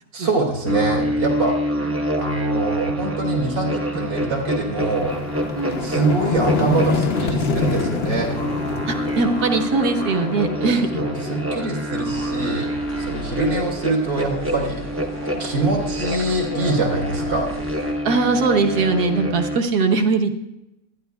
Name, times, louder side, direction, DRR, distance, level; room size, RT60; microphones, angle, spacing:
voice 1, 0.1-1.6 2.2-5.1 5.8-8.3 11.0-12.7 13.0-14.8 15.4-17.5, right 3 dB, 80° right, -2 dB, 3.4 m, -24 dB
sound 1, 0.6-19.6, equal, 20° right, 0.3 m, -27 dB
sound 2, 3.0-3.1 3.6-14.4, left 4 dB, 55° left, 0.7 m, -28 dB
voice 2, 5.5-6.0 8.8-11.0 11.3-11.4 15.3-15.4 18.0-20.3, right 4 dB, 60° right, 4 dB, 1.4 m, -21 dB
sound 3, 12.0-17.9, left 1 dB, 85° left, 5.8 m, -35 dB
23.5 x 10.5 x 2.3 m, 0.93 s
omnidirectional pair, 1.9 m